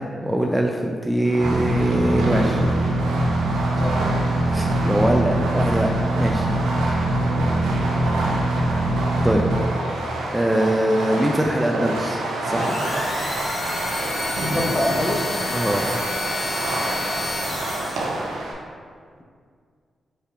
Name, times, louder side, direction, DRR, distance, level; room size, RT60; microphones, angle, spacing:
voice 1, 0.0-2.7 4.5-6.6 9.2-9.4 10.3-12.8 15.5-15.9, right 1 dB, 10° right, 1 dB, 0.4 m, -22 dB
Fireworks, 1.2-18.5, right 2 dB, 90° right, 0.5 m, -28 dB
sound 1, 1.4-9.5, right 1 dB, 70° right, 1.4 m, -23 dB
sound 2, 12.5-18.3, left 2 dB, 65° left, 0.9 m, -29 dB
voice 2, 14.4-15.5, left 1 dB, 25° left, 1 dB, 0.8 m, -25 dB
5.1 x 4.2 x 2.4 m, 2.1 s
supercardioid pair, 40°, 0 cm